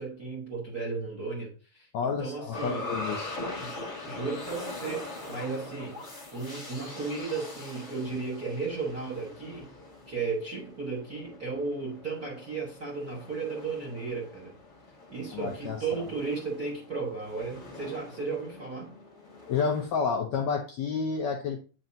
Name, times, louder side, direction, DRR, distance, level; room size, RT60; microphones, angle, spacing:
voice 1, 0.0-2.9 3.6-6.0 6.3-9.7 10.1-14.6 15.1-18.9, right 4 dB, 50° right, 1.1 m, -35 dB
voice 2, 1.9-3.3 15.3-16.0 19.5-21.6, left 5 dB, 70° left, 1.7 m, -30 dB
sound 1, 2.5-19.9, left 2 dB, 30° left, 1.4 m, -42 dB
8.7 x 6.0 x 2.7 m
omnidirectional pair, 3.9 m